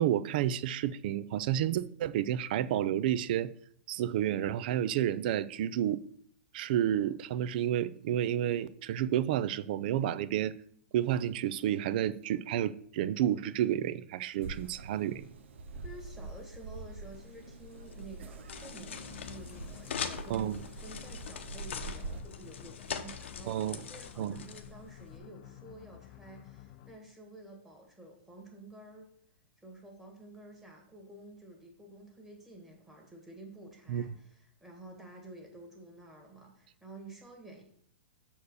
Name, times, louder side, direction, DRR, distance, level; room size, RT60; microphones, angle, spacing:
voice 1, 0.0-3.5 3.9-6.0 6.5-10.5 10.9-15.3 20.3-20.6 23.5-23.8 24.2-24.4 33.9-34.0, right 11 dB, 50° right, 0.4 m, -30 dB
sound 1, 14.4-22.2, right 3 dB, 80° right, 0.8 m, -45 dB
voice 2, 15.8-29.1 29.6-37.6, right 2 dB, 5° right, 1.7 m, -51 dB
sound 2, 17.1-25.2, left 7 dB, 80° left, 0.9 m, -43 dB
sound 3, 18.9-27.1, left 12 dB, 35° left, 0.5 m, -52 dB
7.0 x 4.5 x 6.4 m
hypercardioid pair, 155°, 6 cm